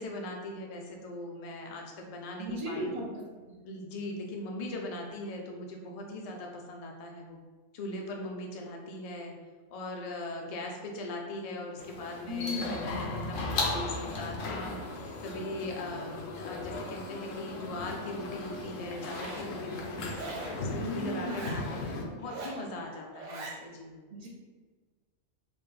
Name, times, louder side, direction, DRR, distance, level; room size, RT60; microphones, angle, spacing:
voice 1, 0.0-3.1 3.6-7.4 7.7-9.3 9.7-14.8 15.2-20.2 20.6-24.0, left 1 dB, 55° left, 1 dB, 0.4 m, -40 dB
voice 2, 2.4-3.6 12.3-12.9 20.8-21.7 24.1-24.3, left 1 dB, 40° right, -2 dB, 0.6 m, -36 dB
sound 1, 11.8-22.1, left 2 dB, 80° left, 1.0 m, -36 dB
Zipper (clothing), 18.9-19.5 20.1-20.6 21.2-21.6 22.2-22.6 23.1-23.6, right 3 dB, 70° right, 1.0 m, -42 dB
4.0 x 2.4 x 3.3 m, 1.4 s
omnidirectional pair, 1.3 m